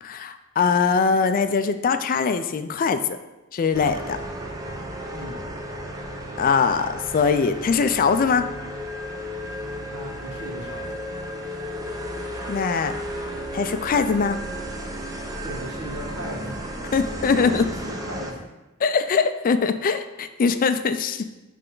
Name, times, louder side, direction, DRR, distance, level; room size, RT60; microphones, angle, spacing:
voice 1, 0.0-3.2 3.5-4.2 6.4-8.5 12.5-12.9 13.5-14.4 16.9-17.6 18.8-21.3, left 5 dB, 40° left, 10 dB, 0.3 m, -22 dB
sound 1, 3.7-18.3, equal, 15° right, 0.6 m, -34 dB
voice 2, 5.1-5.4 9.9-11.0 15.4-16.7 17.3-18.4, equal, 80° right, -2 dB, 1.7 m, -36 dB
9.7 x 3.3 x 3.8 m, 1.0 s
head